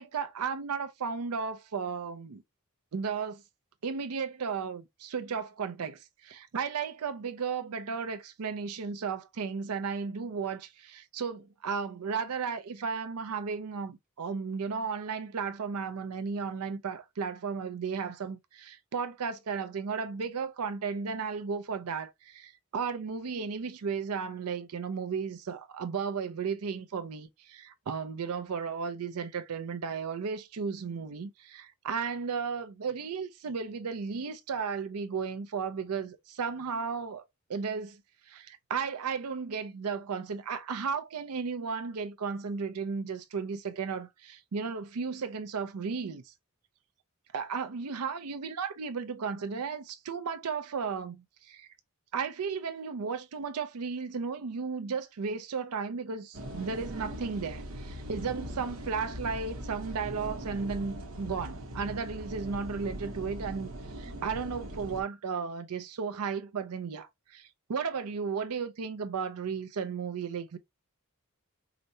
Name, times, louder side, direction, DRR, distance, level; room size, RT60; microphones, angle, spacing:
voice 1, 0.0-2.4 2.9-3.4 3.8-37.2 37.5-38.0 38.3-46.3 47.3-51.7 52.1-63.7 64.0-70.6, right 5 dB, 90° right, 0.5 m, -34 dB
sound 1, 56.3-65.0, right 1 dB, 70° right, 0.9 m, -40 dB
4.9 x 2.1 x 2.7 m
head